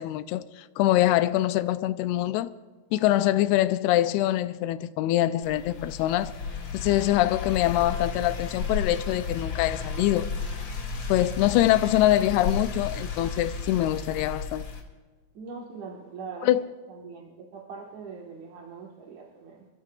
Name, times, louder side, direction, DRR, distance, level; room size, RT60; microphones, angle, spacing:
voice 1, 0.0-2.5 2.9-6.3 6.7-10.3 11.1-14.6 16.4-16.6, left 14 dB, 90° left, 2.6 m, -24 dB
sound 1, 5.4-14.8, left 4 dB, 50° left, 3.0 m, -33 dB
voice 2, 15.3-16.5 16.9-19.7, right 5 dB, 60° right, 2.4 m, -42 dB
29.0 x 14.5 x 2.4 m
omnidirectional pair, 4.5 m